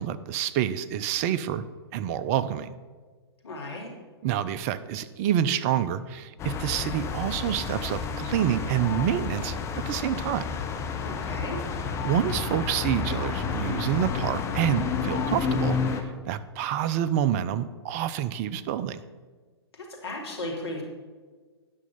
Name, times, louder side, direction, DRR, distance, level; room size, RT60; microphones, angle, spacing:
voice 1, 0.0-1.7 1.9-2.7 4.2-9.6 9.9-10.5 12.0-15.8 16.3-19.0, right 10 dB, 35° right, 15 dB, 0.5 m, -27 dB
voice 2, 3.4-3.9 11.0-11.6 19.7-20.8, left 2 dB, 70° left, 0 dB, 2.7 m, -35 dB
sound 1, 6.4-16.0, left 5 dB, 20° left, 0.9 m, -30 dB
9.9 x 6.2 x 5.7 m, 1.5 s
figure-of-eight pair, 115°, 14 cm